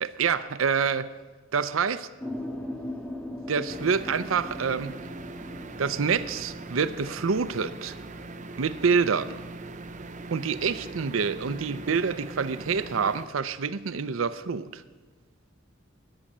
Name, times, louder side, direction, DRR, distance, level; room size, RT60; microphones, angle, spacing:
voice 1, 0.0-1.1 1.5-2.1 3.5-4.9 5.8-8.0 8.6-9.4 10.3-14.8, right 6 dB, 75° right, 13 dB, 0.6 m, -27 dB
sound 1, 2.2-9.7, left 1 dB, 5° left, 1.1 m, -40 dB
sound 2, 3.7-13.3, right 3 dB, 40° right, 0.8 m, -41 dB
14.0 x 10.0 x 7.4 m, 1.3 s
head